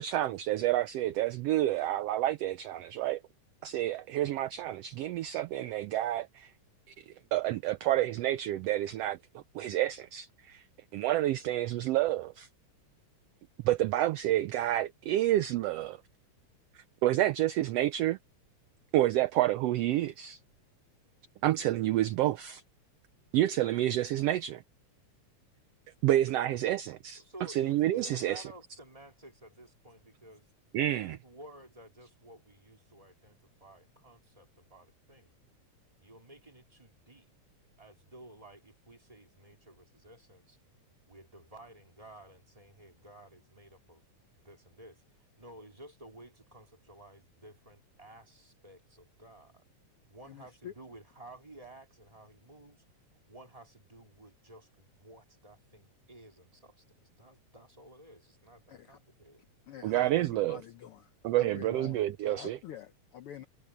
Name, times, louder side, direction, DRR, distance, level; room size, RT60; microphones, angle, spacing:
voice 1, 0.0-3.2 3.6-6.5 7.0-10.6 10.9-12.5 13.6-16.0 16.7-18.2 18.9-20.4 21.4-22.6 23.3-24.6 26.0-28.5 30.7-31.2 59.8-60.6 61.2-62.6, right 14 dB, 75° right, 1.4 m, -29 dB
voice 2, 27.2-30.5 30.9-35.3 36.0-37.3 37.8-40.6 41.1-44.0 44.4-49.6 50.1-52.8 53.3-59.4, right 1 dB, 10° right, 2.9 m, -53 dB
voice 3, 50.2-50.7 58.7-59.0 59.6-61.1 61.4-63.5, left 11 dB, 70° left, 1.4 m, -47 dB
omnidirectional pair, 3.3 m